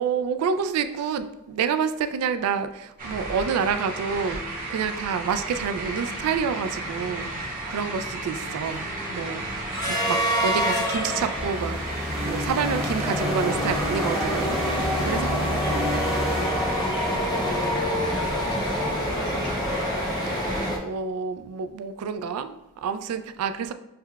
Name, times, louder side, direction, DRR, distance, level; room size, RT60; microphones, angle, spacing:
voice 1, 0.0-11.8 12.2-14.6 15.0-15.8 20.8-23.7, right 6 dB, 90° right, 11 dB, 0.3 m, -28 dB
sound 1, 3.0-20.7, right 2 dB, 40° right, 1.0 m, -34 dB
sound 2, 5.7-6.0 6.4-20.8, equal, 20° left, 0.5 m, -28 dB
sound 3, 11.4-17.5, equal, 25° right, 0.7 m, -32 dB
voice 2, 17.1-19.9, left 2 dB, 80° left, 2 dB, 0.6 m, -38 dB
6.4 x 2.2 x 2.2 m, 0.95 s
head